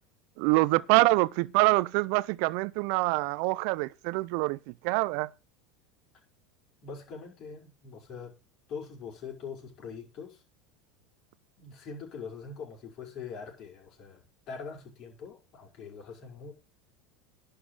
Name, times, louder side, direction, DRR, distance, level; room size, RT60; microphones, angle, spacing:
voice 1, 0.4-5.3, right 22 dB, 60° right, 0.5 m, -25 dB
voice 2, 6.8-8.4 8.7-10.4 11.6-16.5, left 5 dB, 45° left, 5.4 m, -43 dB
11.0 x 5.2 x 7.9 m
hypercardioid pair, 80°, 0 cm